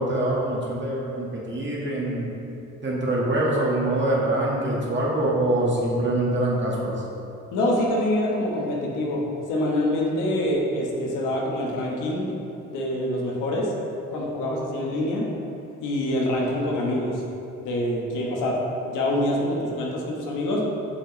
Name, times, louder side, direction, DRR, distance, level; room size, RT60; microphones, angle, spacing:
voice 1, 0.0-2.3 2.8-6.9, right 1 dB, 40° right, -4 dB, 1.6 m, -24 dB
voice 2, 7.5-9.2 9.5-12.3 12.7-13.7 14.1-15.3 15.8-17.2 17.6-18.6 18.9-20.6, left 1 dB, 90° left, -2 dB, 1.2 m, -25 dB
7.7 x 5.9 x 3.1 m, 2.8 s
cardioid pair, 90°, 30 cm